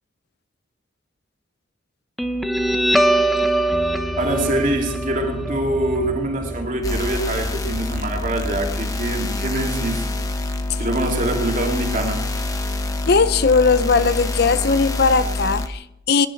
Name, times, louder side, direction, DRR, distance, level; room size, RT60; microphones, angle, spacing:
Guitar, 2.2-9.2, right 1 dB, ahead, 0.7 m, -23 dB
voice 1, 4.2-10.1 10.8-12.3, right 1 dB, 40° right, 2.8 m, -24 dB
sound 1, 6.8-15.7, left 2 dB, 15° left, 1.1 m, -26 dB
voice 2, 13.1-16.3, left 4 dB, 55° left, 0.6 m, -18 dB
22.5 x 11.0 x 4.6 m
head